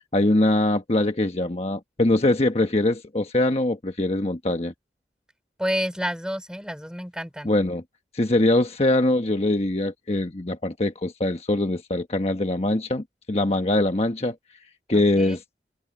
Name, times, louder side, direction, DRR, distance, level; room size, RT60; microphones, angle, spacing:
voice 1, 0.0-4.7 7.4-7.8 8.1-14.4 14.9-15.4, left 1 dB, 35° left, 1.2 m, -23 dB
voice 2, 5.6-7.5 15.2-15.4, equal, 5° right, 4.4 m, -29 dB
head